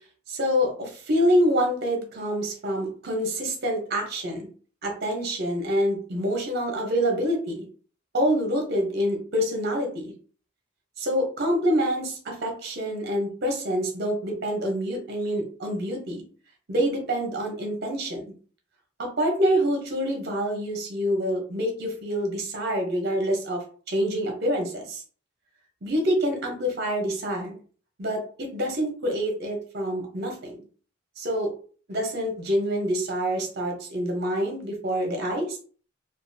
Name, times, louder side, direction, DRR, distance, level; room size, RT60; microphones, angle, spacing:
voice 1, 0.3-4.5 4.8-7.7 8.1-10.1 11.0-16.2 16.7-18.3 19.0-25.0 25.8-27.6 28.0-30.6 31.2-31.5 31.9-35.6, equal, 55° right, 3 dB, 0.7 m, -26 dB
2.4 x 2.4 x 2.6 m, 0.42 s
head